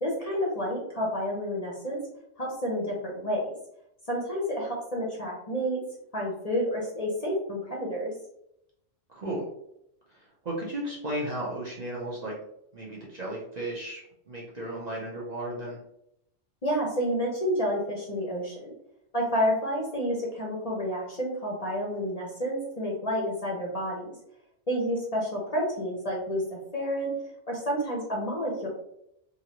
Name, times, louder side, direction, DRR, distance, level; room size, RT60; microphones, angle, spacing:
voice 1, 0.0-2.0 2.4-3.5 4.1-5.8 6.1-8.1 16.6-18.7 19.1-24.1 24.7-26.4 26.7-27.1 27.5-28.7, equal, 40° left, -3 dB, 0.7 m, -29 dB
voice 2, 9.1-9.5 10.1-12.3 12.7-14.0 14.3-15.8, right 1 dB, 45° right, -5 dB, 0.7 m, -34 dB
3.0 x 2.6 x 2.9 m, 0.77 s
omnidirectional pair, 1.2 m